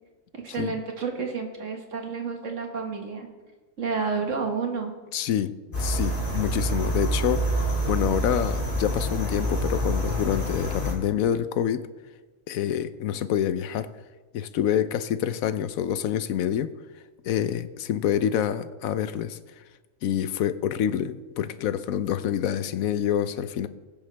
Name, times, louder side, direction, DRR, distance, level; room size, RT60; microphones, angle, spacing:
voice 1, 0.3-3.3 3.8-4.9, right 5 dB, 60° right, 2 dB, 1.9 m, -30 dB
voice 2, 5.1-5.5 5.8-11.9 12.5-13.9 14.3-16.7 17.2-19.4 20.0-23.7, left 10 dB, 80° left, 13 dB, 1.1 m, -27 dB
sound 1, 5.7-10.9, right 1 dB, 35° left, 2.8 m, -27 dB
20.5 x 7.1 x 3.3 m, 1.3 s
omnidirectional pair, 1.4 m